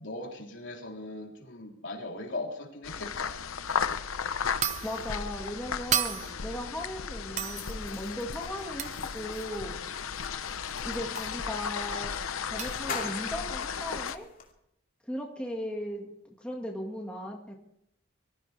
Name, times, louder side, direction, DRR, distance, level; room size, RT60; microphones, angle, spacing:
voice 1, 0.0-3.4, left 2 dB, 65° left, 0 dB, 3.6 m, -39 dB
sound 1, 2.8-14.2, left 6 dB, 90° left, 0.8 m, -35 dB
sound 2, 3.7-3.9 4.6-5.1 5.9-6.5 7.4-7.8 8.8-9.1 11.2-11.3 12.6-12.8, right 9 dB, 35° right, 0.7 m, -32 dB
voice 2, 4.8-9.8 10.8-12.1 12.4-14.3 15.1-16.1 16.4-17.6, left 1 dB, 5° left, -1 dB, 1.9 m, -37 dB
sound 3, 7.3-11.4 12.1-12.2 12.5-14.5, left 5 dB, 40° left, 2.5 m, -44 dB
24.5 x 15.0 x 3.4 m, 0.76 s
head